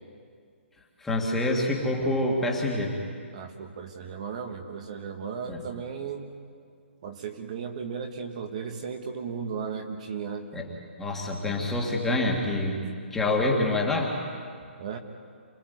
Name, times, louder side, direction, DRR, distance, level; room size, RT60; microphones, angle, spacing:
voice 1, 1.0-3.0 5.5-5.7 10.5-10.7 11.0-12.8 13.1-14.1, left 2 dB, 5° left, -2 dB, 2.0 m, -26 dB
voice 2, 3.3-6.3 7.0-10.5 14.8-15.0, right 6 dB, 35° right, 4 dB, 1.4 m, -35 dB
26.5 x 19.5 x 9.4 m, 2.2 s
hypercardioid pair, 170°, 7 cm